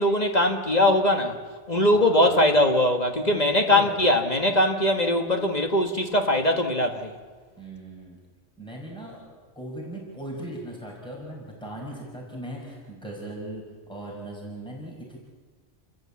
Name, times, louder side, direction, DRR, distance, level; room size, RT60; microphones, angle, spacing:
voice 1, 0.0-1.4 1.7-7.1, left 1 dB, 35° left, 5 dB, 1.6 m, -21 dB
voice 2, 1.9-2.5 3.7-4.0 7.6-8.2 8.6-15.2, right 1 dB, 5° left, -3 dB, 5.7 m, -38 dB
29.5 x 14.5 x 8.5 m, 1.4 s
omnidirectional pair, 1.3 m